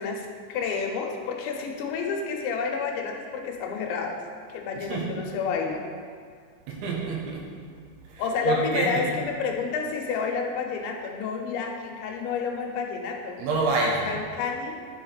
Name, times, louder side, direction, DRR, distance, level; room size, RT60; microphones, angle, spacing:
voice 1, 0.0-4.2 4.5-5.8 8.2-13.4 13.8-14.8, left 5 dB, 85° left, 2 dB, 3.1 m, -30 dB
voice 2, 6.7-7.5 8.1-9.0 13.4-14.1, right 3 dB, 85° right, -2 dB, 3.6 m, -27 dB
10.5 x 5.0 x 4.0 m, 2.1 s
omnidirectional pair, 5.2 m